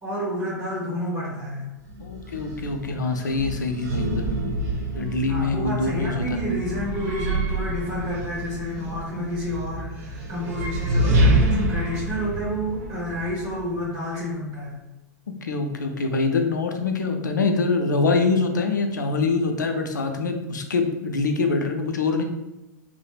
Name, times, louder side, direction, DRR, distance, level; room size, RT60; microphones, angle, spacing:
voice 1, 0.0-1.6 5.3-14.8, equal, 30° right, -8 dB, 1.0 m, -29 dB
sound 1, 1.8-13.9, right 1 dB, 50° right, 0.6 m, -27 dB
voice 2, 2.0-4.3 4.9-6.2 15.4-22.2, left 3 dB, 80° left, 5 dB, 0.4 m, -24 dB
3.1 x 2.0 x 2.3 m, 1.0 s
figure-of-eight pair, 100°, 10 cm